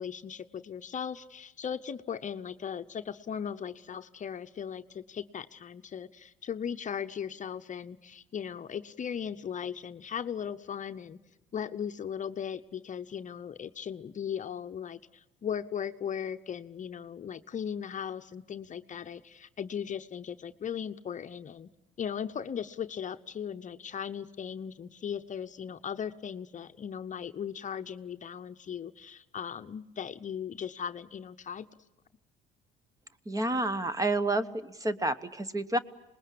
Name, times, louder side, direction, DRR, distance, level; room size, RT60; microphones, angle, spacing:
voice 1, 0.0-11.2 11.5-21.7 22.0-31.7, left 8 dB, 40° left, 9 dB, 0.8 m, -38 dB
voice 2, 33.3-35.8, right 2 dB, 15° right, 13 dB, 1.1 m, -29 dB
26.5 x 20.5 x 8.5 m, 0.95 s
supercardioid pair, 85°, 20 cm